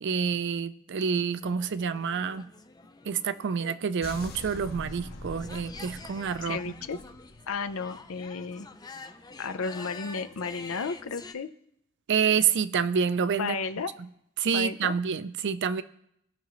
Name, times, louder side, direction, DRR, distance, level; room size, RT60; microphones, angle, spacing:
voice 1, 0.0-2.5 3.1-6.7 12.1-13.6 14.0-14.1 14.4-15.8, right 6 dB, 60° right, 14 dB, 0.4 m, -28 dB
sound 1, 1.4-11.3, left 3 dB, 20° left, 0.5 m, -47 dB
sound 2, 4.0-8.1, left 1 dB, 50° left, 1.0 m, -43 dB
voice 2, 6.4-7.0 7.5-8.7 9.4-11.5 13.4-13.9 14.5-14.9, left 4 dB, 75° left, 11 dB, 0.6 m, -33 dB
18.0 x 6.1 x 3.1 m, 0.75 s
head